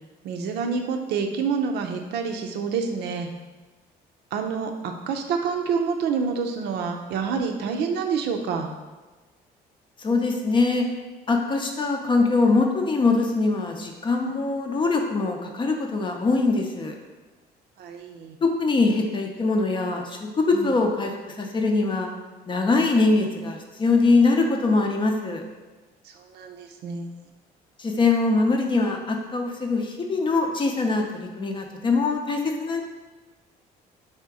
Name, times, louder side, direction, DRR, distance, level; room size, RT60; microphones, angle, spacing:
voice 1, 0.2-3.3 4.3-8.7 14.2-14.3 17.8-18.4 20.5-20.8 26.2-27.1, right 5 dB, 75° right, 4 dB, 0.5 m, -28 dB
voice 2, 10.0-10.9 11.3-16.9 18.4-22.1 22.5-25.4 27.8-32.8, left 3 dB, 30° left, 3 dB, 0.6 m, -23 dB
3.5 x 2.8 x 4.7 m, 1.2 s
cardioid pair, 110°, 17 cm